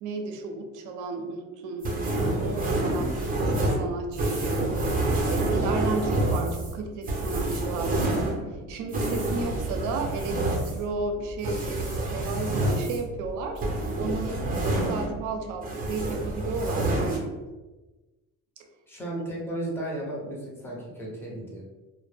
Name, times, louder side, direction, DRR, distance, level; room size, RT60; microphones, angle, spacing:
voice 1, 0.0-1.9 2.4-4.7 5.2-8.2 8.7-13.6 14.0-17.4, right 3 dB, 70° right, 4 dB, 0.5 m, -33 dB
sound 1, 1.8-15.3 15.6-17.2, right 2 dB, 25° right, 0.6 m, -28 dB
voice 2, 2.8-3.2 14.3-14.6 18.9-21.6, right 1 dB, 5° left, -4 dB, 0.8 m, -35 dB
2.1 x 2.0 x 3.2 m, 1.1 s
cardioid pair, 105°, 32 cm